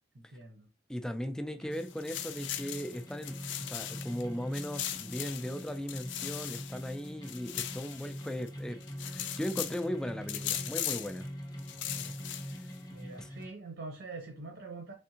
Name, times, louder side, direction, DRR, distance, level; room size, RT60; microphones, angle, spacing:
voice 1, 0.1-0.7 11.8-12.1 12.9-14.9, right 3 dB, 70° right, 0.8 m, -45 dB
voice 2, 0.9-11.3 13.1-13.3, equal, 5° left, 0.3 m, -38 dB
sound 1, 1.5-13.5, equal, 20° left, 0.8 m, -44 dB
sound 2, 1.7-4.2 4.5-8.5 8.8-9.8 10.3-11.2 11.6-12.8, left 11 dB, 80° left, 0.4 m, -39 dB
3.5 x 3.4 x 2.8 m
head